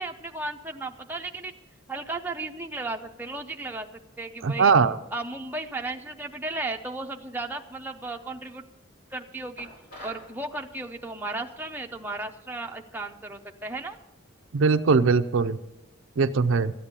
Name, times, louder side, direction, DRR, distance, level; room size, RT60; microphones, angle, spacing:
voice 1, 0.0-1.5 1.9-3.9 4.2-4.7 5.1-8.6 9.1-9.7 10.0-14.0, right 2 dB, 10° right, 3 dB, 0.6 m, -35 dB
voice 2, 4.4-5.0 14.5-15.6 16.2-16.7, right 5 dB, 70° right, 10 dB, 0.5 m, -20 dB
sound 1, 9.6-10.3, equal, 45° left, 4.0 m, -44 dB
13.0 x 8.8 x 6.7 m, 0.95 s
head